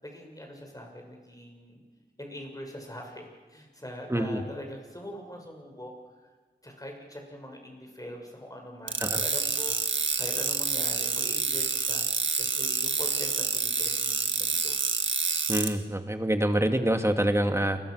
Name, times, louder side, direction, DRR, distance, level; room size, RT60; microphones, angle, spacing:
voice 1, 0.0-1.8 2.2-6.0 6.6-14.8, equal, 20° left, 2 dB, 6.6 m, -42 dB
voice 2, 4.1-4.4 9.0-9.2 15.5-17.8, right 1 dB, 15° right, 6 dB, 2.4 m, -26 dB
sound 1, 8.9-15.7, right 4 dB, 90° right, 1.8 m, -28 dB
28.5 x 23.0 x 6.6 m, 1.4 s
wide cardioid pair, 60°, 19 cm